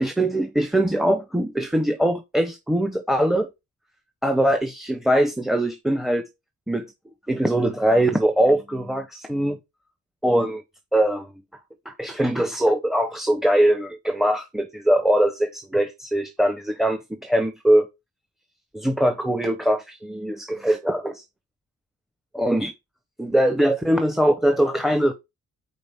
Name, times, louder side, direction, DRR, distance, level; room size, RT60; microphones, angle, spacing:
voice 1, 0.0-3.5 4.2-6.3 6.7-6.9 7.3-9.6 10.2-10.6 10.9-11.3 11.8-17.9 18.7-21.2 22.3-22.7 23.2-25.1, right 1 dB, ahead, 0.9 m, -22 dB
5.2 x 4.0 x 5.7 m
cardioid pair, 80°, 30 cm